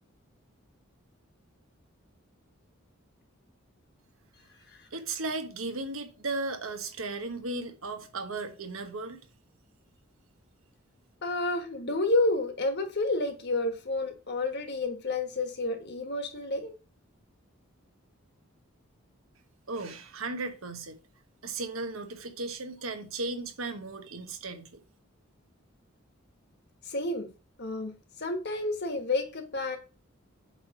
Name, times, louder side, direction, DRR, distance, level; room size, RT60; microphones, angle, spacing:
voice 1, 4.9-9.2 19.7-21.0 21.4-24.8, right 3 dB, 80° right, 1.1 m, -36 dB
voice 2, 11.2-16.7 26.9-27.3 27.6-27.9 28.2-29.8, left 2 dB, 55° left, 1.4 m, -30 dB
8.1 x 3.3 x 4.8 m
head